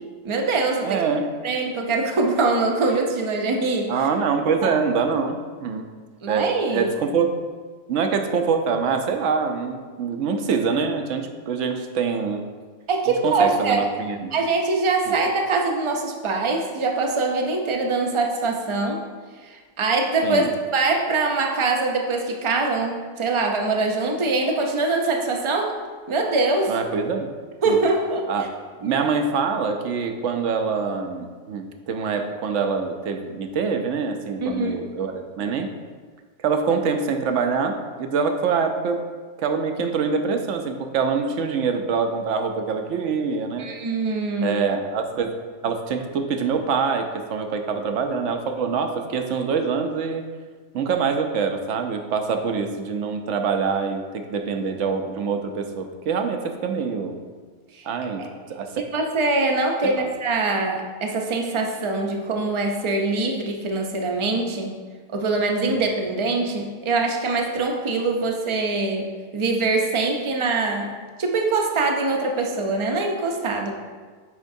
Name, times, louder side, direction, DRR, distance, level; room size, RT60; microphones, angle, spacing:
voice 1, 0.2-1.0 1.4-3.9 4.6-4.7 6.2-6.9 12.9-13.8 14.3-19.0 19.4-25.7 26.1-26.7 27.6-28.3 28.8-29.1 34.4-34.7 43.6-44.6 56.8-56.9 57.8-57.9 58.2-58.3 58.9-64.7 65.1-69.1 69.3-70.9 71.2-73.7, right 3 dB, 35° right, 2 dB, 0.5 m, -23 dB
voice 2, 0.8-1.3 3.9-5.9 6.3-7.3 7.9-12.4 13.2-14.3 15.1-15.2 20.2-20.5 26.7-27.3 27.7-27.8 28.3-28.5 28.8-35.7 36.4-39.0 39.4-43.7 44.4-45.4 45.6-50.2 50.7-57.2 57.9-58.9 59.8-60.1, right 5 dB, 75° right, 6 dB, 1.0 m, -25 dB
9.6 x 4.4 x 2.7 m, 1.5 s
omnidirectional pair, 1.3 m